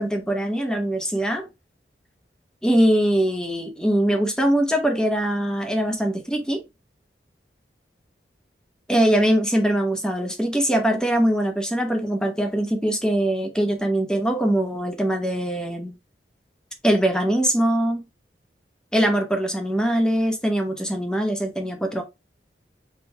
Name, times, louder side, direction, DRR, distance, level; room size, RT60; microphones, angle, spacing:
voice 1, 0.0-1.5 2.6-6.6 8.9-15.9 16.8-18.0 18.9-22.0, right 1 dB, 5° left, 1.0 m, -22 dB
4.2 x 3.8 x 3.3 m
head